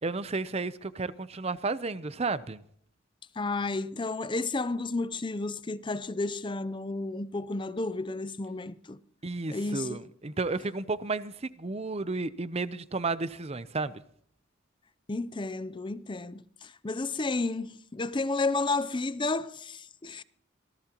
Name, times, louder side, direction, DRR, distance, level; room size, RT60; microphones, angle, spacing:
voice 1, 0.0-2.6 9.2-14.0, right 3 dB, 35° right, 0.7 m, -32 dB
voice 2, 3.4-9.0 9.5-10.0 15.1-20.2, left 3 dB, 25° left, 0.6 m, -32 dB
25.5 x 18.0 x 3.0 m
head